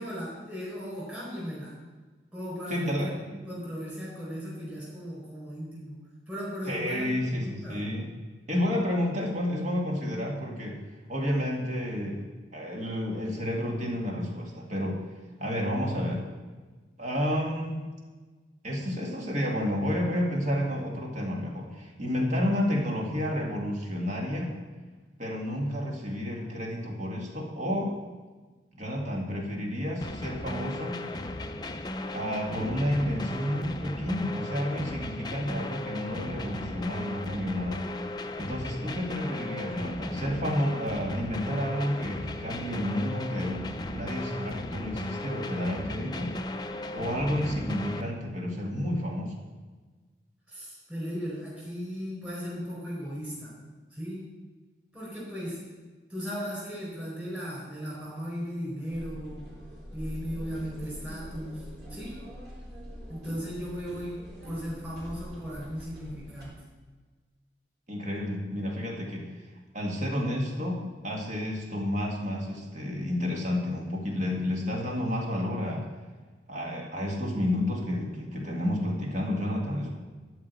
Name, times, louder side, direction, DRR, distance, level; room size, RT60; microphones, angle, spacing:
voice 1, 0.0-1.8 2.3-6.0 6.3-7.8 50.5-53.6 53.9-54.3 54.9-55.6 56.1-59.5 59.9-62.2 63.1-66.6, equal, 10° right, -7 dB, 4.3 m, -37 dB
voice 2, 2.7-3.1 6.7-8.1 8.5-10.8 11.1-12.2 12.5-15.0 15.4-16.3 17.0-17.9 18.6-24.5 25.2-27.9 28.7-31.0 32.1-37.8 38.4-46.3 46.9-49.3 67.9-69.4 69.7-75.9 76.5-79.9, left 1 dB, 40° right, -1 dB, 2.2 m, -30 dB
sound 1, 30.0-48.0, left 1 dB, 25° left, 0.6 m, -36 dB
sound 2, 58.9-66.4, equal, 60° right, 4.2 m, -43 dB
13.0 x 4.9 x 8.3 m, 1.3 s
head